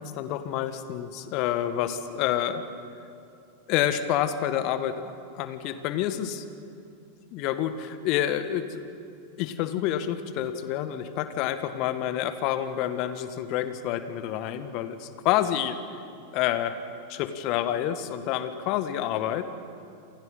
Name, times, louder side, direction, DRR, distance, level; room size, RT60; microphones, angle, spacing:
voice 1, 0.0-2.6 3.7-6.4 7.3-8.8 9.4-15.8 16.3-16.7 17.1-19.4, left 11 dB, 40° left, 11 dB, 1.7 m, -28 dB
28.0 x 27.5 x 5.8 m, 2.6 s
figure-of-eight pair, 90°, 0 cm